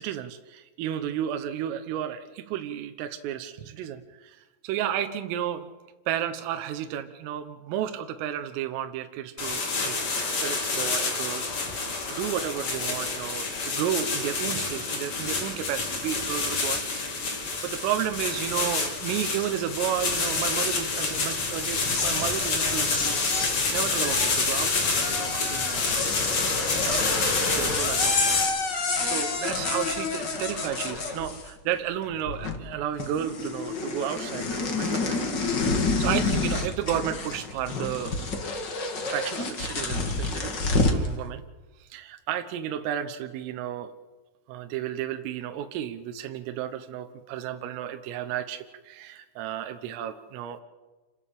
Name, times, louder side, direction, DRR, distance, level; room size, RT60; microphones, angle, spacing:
voice 1, 0.0-5.7 6.1-10.0 10.4-17.2 17.6-23.3 23.7-25.9 26.1-35.2 35.6-38.2 39.0-40.5 40.9-41.4 41.8-43.9 44.5-50.6, right 10 dB, 80° right, 7 dB, 3.7 m, -33 dB
sound 1, 9.4-28.4, left 4 dB, 35° left, 4.3 m, -28 dB
sound 2, 21.7-31.7 32.0-32.7 33.0-41.1, left 3 dB, 85° left, 0.9 m, -29 dB
28.0 x 13.0 x 8.5 m, 1.2 s
omnidirectional pair, 5.9 m